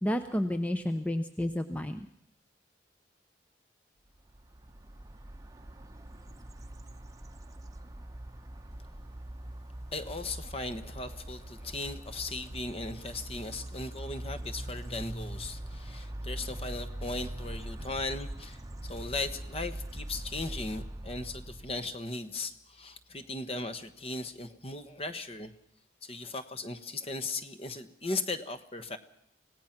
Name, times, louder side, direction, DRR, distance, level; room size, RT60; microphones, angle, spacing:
voice 1, 0.0-2.1, left 1 dB, 10° left, 9 dB, 0.7 m, -31 dB
sound 1, 4.3-21.9, right 1 dB, 20° right, 0.9 m, -42 dB
voice 2, 9.9-25.5 26.0-29.0, left 2 dB, 30° left, 10 dB, 1.2 m, -37 dB
25.5 x 17.0 x 5.9 m, 0.75 s
head